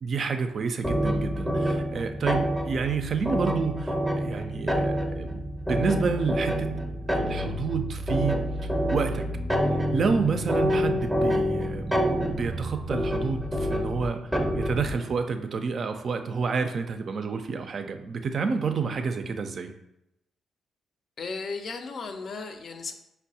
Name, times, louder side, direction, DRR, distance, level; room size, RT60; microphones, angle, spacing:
voice 1, 0.0-6.7 7.1-8.4 8.9-9.2 9.9-12.1 12.4-14.2 14.5-19.7, right 5 dB, 55° right, 6 dB, 0.3 m, -29 dB
sound 1, 0.8-15.0, equal, ahead, 0.6 m, -27 dB
voice 2, 21.2-22.9, left 4 dB, 55° left, 6 dB, 0.4 m, -35 dB
4.5 x 2.0 x 2.6 m, 0.84 s
hypercardioid pair, 40°, 0 cm